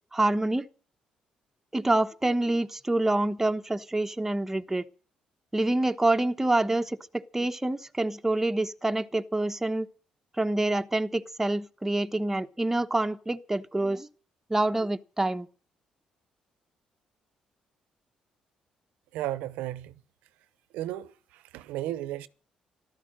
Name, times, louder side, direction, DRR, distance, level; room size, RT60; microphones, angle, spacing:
voice 1, 0.1-0.7 1.7-4.8 5.5-9.9 10.4-14.1 14.5-15.5, right 2 dB, 15° right, 1.2 m, -27 dB
voice 2, 19.1-19.9 20.7-22.3, right 14 dB, 90° right, 0.9 m, -34 dB
14.0 x 12.5 x 7.7 m
supercardioid pair, 70°, 3 cm